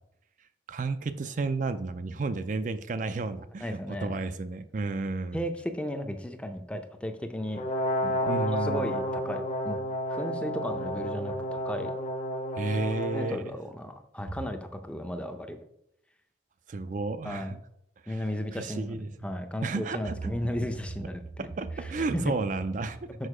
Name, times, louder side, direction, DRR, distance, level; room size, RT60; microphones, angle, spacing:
voice 1, 0.7-5.4 8.3-9.0 12.6-13.5 16.7-17.6 18.0-18.3 18.5-19.3 19.6-20.3 21.0-21.1 21.4-23.1, right 3 dB, 45° right, 10 dB, 0.4 m, -32 dB
voice 2, 3.6-4.2 5.3-7.6 8.0-9.8 10.1-11.9 13.1-15.6 17.2-17.5 18.1-21.5 21.8-22.3, equal, 5° left, 7 dB, 0.5 m, -35 dB
Brass instrument, 7.5-13.4, equal, 40° left, 0.9 m, -31 dB
6.4 x 5.0 x 4.9 m, 0.77 s
head